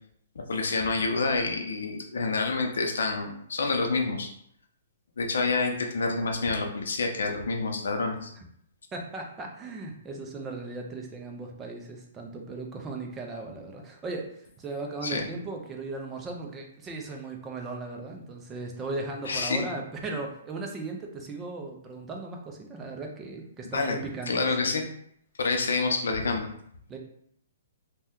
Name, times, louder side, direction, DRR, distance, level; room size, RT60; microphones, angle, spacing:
voice 1, 0.4-4.3 5.2-8.3 15.0-15.3 19.3-19.7 23.7-24.0 24.3-24.8 25.4-26.5, left 3 dB, 80° left, 2 dB, 0.5 m, -28 dB
voice 2, 8.9-24.5 26.9-27.0, right 3 dB, 15° right, 1 dB, 0.4 m, -37 dB
2.7 x 2.2 x 3.5 m, 0.69 s
hypercardioid pair, 160°, 0 cm